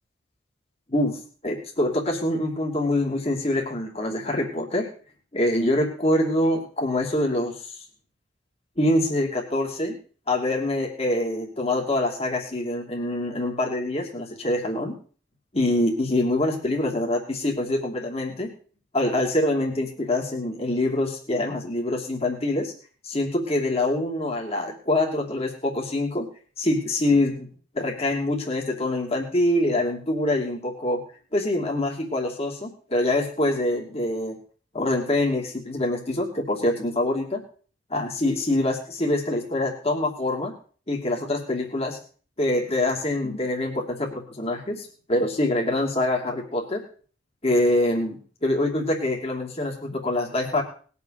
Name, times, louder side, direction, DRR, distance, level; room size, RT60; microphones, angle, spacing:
voice 1, 0.9-4.9 5.3-7.6 8.8-10.0 10.3-15.0 15.5-18.5 18.9-22.7 23.0-26.3 26.6-27.5 27.7-31.0 31.3-34.4 34.7-37.4 37.9-40.5 40.9-42.0 42.4-46.8 47.4-50.6, left 1 dB, 35° left, 0 dB, 2.7 m, -25 dB
20.0 x 7.0 x 6.6 m, 0.42 s
head